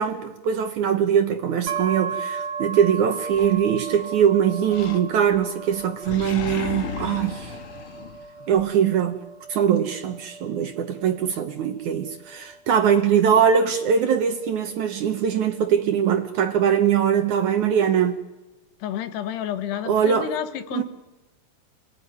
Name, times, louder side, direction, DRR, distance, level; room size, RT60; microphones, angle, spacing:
voice 1, 0.0-7.6 8.5-9.2 9.5-18.2 19.9-20.3 20.7-20.8, right 8 dB, 65° right, 2.1 m, -22 dB
sound 1, 1.7-15.4, right 5 dB, 90° right, 3.6 m, -36 dB
Animal, 3.3-4.2 4.7-5.4 5.7-8.7, left 6 dB, 50° left, 1.8 m, -35 dB
voice 2, 18.8-20.8, left 11 dB, 85° left, 3.4 m, -30 dB
27.0 x 18.5 x 9.6 m
omnidirectional pair, 4.6 m